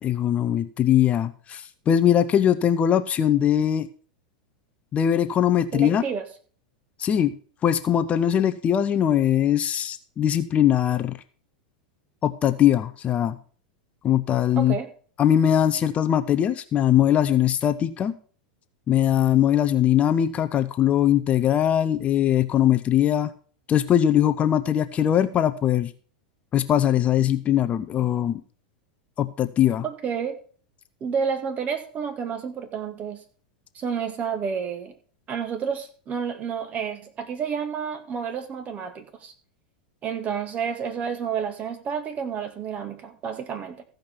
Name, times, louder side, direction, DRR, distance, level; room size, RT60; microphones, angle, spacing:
voice 1, 0.0-3.9 4.9-6.0 7.0-7.3 7.6-11.2 12.2-13.4 14.0-14.8 15.2-18.2 18.9-23.3 23.7-25.9 26.5-28.4 29.2-29.8, left 10 dB, 30° left, 11 dB, 0.7 m, -21 dB
voice 2, 5.7-6.2 14.6-14.9 29.8-30.4 31.0-33.2 33.7-34.9 35.3-39.3 40.0-43.8, right 6 dB, 35° right, 8 dB, 1.9 m, -30 dB
15.0 x 5.2 x 5.9 m, 0.43 s
hypercardioid pair, 115°, 4 cm